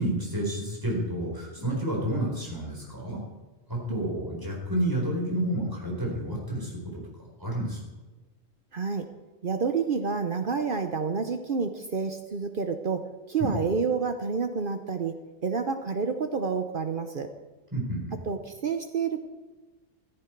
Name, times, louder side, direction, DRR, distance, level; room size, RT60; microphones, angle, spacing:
voice 1, 0.0-3.2 3.7-6.8 7.4-7.8 13.4-13.5 17.7-18.2, right 1 dB, 20° right, -3 dB, 4.5 m, -30 dB
voice 2, 8.7-9.1 9.4-15.1 15.4-17.3 18.3-19.2, right 5 dB, 55° right, 7 dB, 1.0 m, -29 dB
14.5 x 14.0 x 4.6 m, 1.2 s
omnidirectional pair, 1.2 m